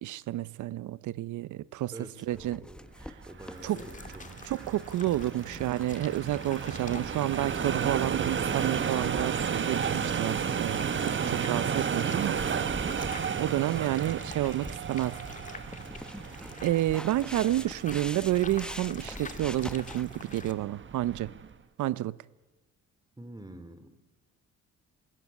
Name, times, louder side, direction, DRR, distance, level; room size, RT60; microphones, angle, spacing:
voice 1, 0.0-1.9 2.2-2.6 3.6-3.8 4.4-12.4 13.4-15.2 16.6-21.3 21.8-22.2, right 14 dB, 75° right, 0.8 m, -30 dB
voice 2, 1.9-2.9 3.3-4.5 23.2-24.0, right 1 dB, 15° right, 3.0 m, -47 dB
sound 1, 2.3-20.1, equal, 5° left, 1.2 m, -46 dB
sound 2, 3.2-21.5, right 7 dB, 40° right, 1.4 m, -33 dB
sound 3, 3.5-20.5, left 4 dB, 25° left, 2.2 m, -48 dB
26.5 x 20.0 x 9.6 m
cardioid pair, 90°, 30 cm